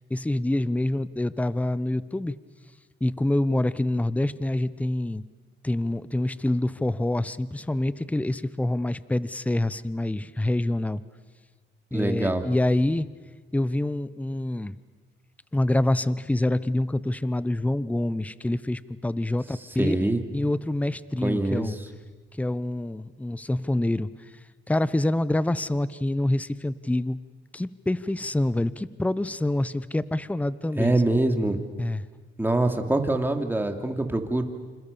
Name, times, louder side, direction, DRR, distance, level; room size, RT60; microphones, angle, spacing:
voice 1, 0.1-2.3 3.0-5.2 5.6-11.0 11.9-13.1 13.5-14.7 15.5-21.8 22.4-24.1 24.7-27.2 27.5-31.0 31.8-32.0, left 1 dB, 5° left, 16 dB, 0.9 m, -26 dB
voice 2, 11.9-12.4 19.8-20.2 21.2-21.7 30.8-31.6 32.4-34.4, right 2 dB, 10° right, 5 dB, 3.0 m, -24 dB
28.5 x 27.5 x 7.0 m, 1.3 s
cardioid pair, 90°, 20 cm